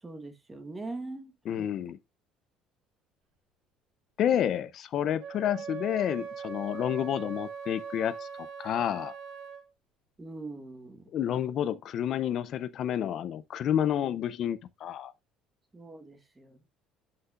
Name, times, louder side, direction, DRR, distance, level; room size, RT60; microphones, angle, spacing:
voice 1, 0.0-1.3 1.6-1.7 10.2-11.0 15.7-16.7, right 2 dB, 10° right, 1.2 m, -42 dB
voice 2, 1.5-2.0 4.2-9.1 11.1-15.1, left 10 dB, 40° left, 0.4 m, -30 dB
Wind instrument woodwind instrument, 5.2-9.7, right 6 dB, 60° right, 3.3 m, -40 dB
11.5 x 5.8 x 2.4 m
cardioid pair, 170°, 0 cm